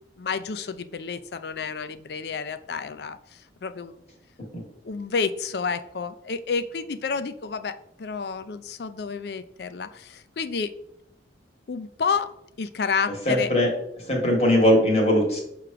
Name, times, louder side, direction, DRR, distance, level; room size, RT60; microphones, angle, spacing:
voice 1, 0.2-4.0 4.8-10.7 11.7-12.3 12.6-13.5, left 5 dB, 65° left, 12 dB, 0.4 m, -30 dB
voice 2, 13.3-15.4, left 1 dB, 35° left, 0 dB, 1.9 m, -21 dB
6.7 x 3.1 x 5.9 m, 0.78 s
head